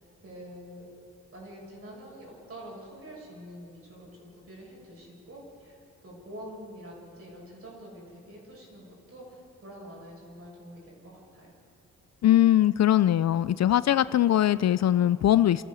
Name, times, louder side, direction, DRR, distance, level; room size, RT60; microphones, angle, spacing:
voice 1, 0.2-0.9 1.3-11.5, equal, 45° right, -2 dB, 6.6 m, -46 dB
voice 2, 12.2-15.6, left 12 dB, 55° left, 16 dB, 0.4 m, -21 dB
29.5 x 14.0 x 7.0 m, 2.9 s
wide cardioid pair, 130°, 31 cm